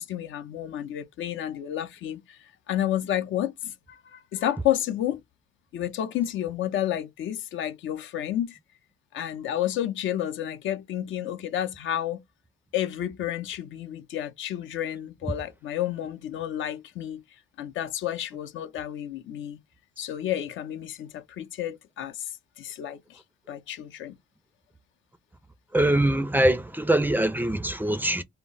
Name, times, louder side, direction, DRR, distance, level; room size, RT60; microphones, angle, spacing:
voice 1, 0.0-5.2 5.7-8.6 9.1-12.2 12.7-17.2 17.6-19.6 20.0-23.2 23.5-24.2, left 11 dB, 75° left, 0.5 m, -31 dB
voice 2, 25.7-28.2, right 1 dB, 10° right, 0.4 m, -23 dB
2.1 x 2.0 x 3.7 m
cardioid pair, 90°, 20 cm